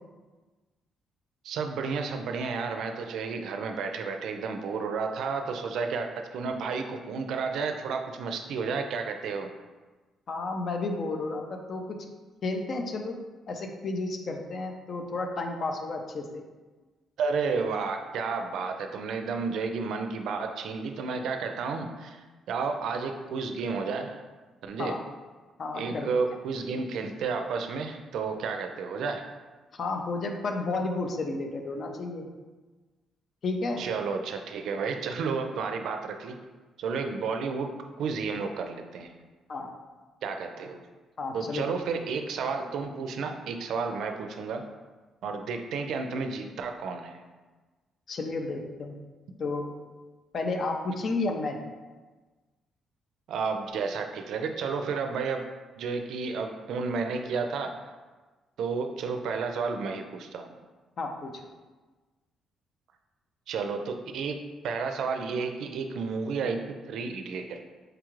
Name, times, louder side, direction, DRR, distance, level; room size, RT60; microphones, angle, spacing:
voice 1, 1.4-9.5 17.2-24.2 24.6-25.0 25.7-29.3 33.8-36.4 36.8-39.2 40.2-40.8 41.3-44.6 45.2-47.2 53.3-55.4 55.8-57.9 58.6-60.6 63.5-67.7, right 5 dB, 75° right, 5 dB, 0.4 m, -32 dB
voice 2, 10.3-12.0 12.4-13.2 13.5-16.4 24.8-25.0 25.6-26.1 29.7-32.3 33.4-33.8 39.5-39.7 41.2-41.6 48.1-49.0 49.4-49.7 50.3-51.6 61.0-61.4, left 3 dB, 50° left, 3 dB, 0.5 m, -32 dB
4.8 x 2.4 x 3.0 m, 1.3 s
cardioid pair, 90°, 0 cm